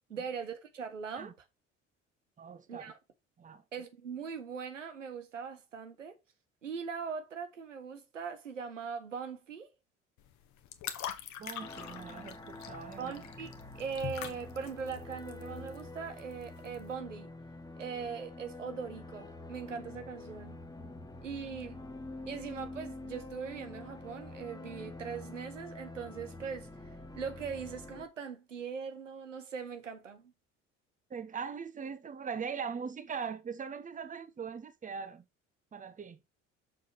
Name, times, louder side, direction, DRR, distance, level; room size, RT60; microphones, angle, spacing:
voice 1, 0.1-1.3 2.7-3.0 3.7-6.2 6.6-9.7 13.0-13.5 13.7-17.3 17.8-20.6 21.2-21.8 22.3-26.7 27.1-30.3, right 6 dB, 85° right, 1.3 m, -40 dB
voice 2, 2.4-2.9 3.4-3.6 11.4-13.3 31.1-35.2 35.7-36.2, right 6 dB, 20° right, 1.0 m, -41 dB
sound 1, 10.2-16.9, left 10 dB, 50° left, 1.4 m, -44 dB
sound 2, 11.6-28.1, left 2 dB, 10° left, 1.8 m, -46 dB
6.7 x 4.8 x 6.1 m
figure-of-eight pair, 60°, 37 cm